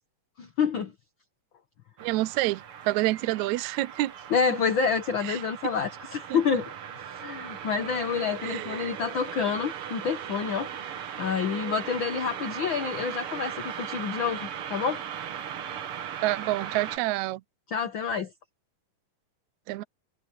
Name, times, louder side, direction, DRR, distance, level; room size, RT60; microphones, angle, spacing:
voice 1, 0.4-0.9 4.3-6.7 7.1-10.7 11.2-15.0 17.7-18.3, left 6 dB, 65° left, 1.2 m, -28 dB
sound 1, 2.0-17.0, right 9 dB, 55° right, 1.7 m, -38 dB
voice 2, 2.0-4.1 5.2-5.4 6.3-6.4 8.4-8.9 16.2-17.4 19.7-19.8, right 18 dB, 80° right, 1.7 m, -28 dB
omnidirectional pair, 3.8 m